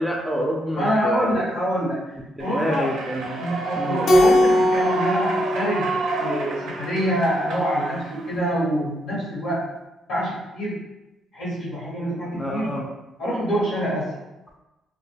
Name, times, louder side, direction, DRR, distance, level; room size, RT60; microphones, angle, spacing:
voice 1, 0.0-1.4 2.4-3.4 3.8-4.0 12.3-12.9, equal, ahead, -2 dB, 0.5 m, -27 dB
voice 2, 0.8-2.0 2.4-3.0 3.4-5.9 6.2-9.6 10.1-10.8 11.3-12.7 13.2-14.1, equal, 85° left, -7 dB, 1.1 m, -25 dB
Human voice / Clapping / Cheering, 2.4-8.4, right 3 dB, 80° right, 0.4 m, -30 dB
Keyboard (musical), 4.1-6.7, left 1 dB, 60° left, 0.4 m, -20 dB
2.2 x 2.1 x 3.2 m, 1.0 s
cardioid pair, 90°, 0 cm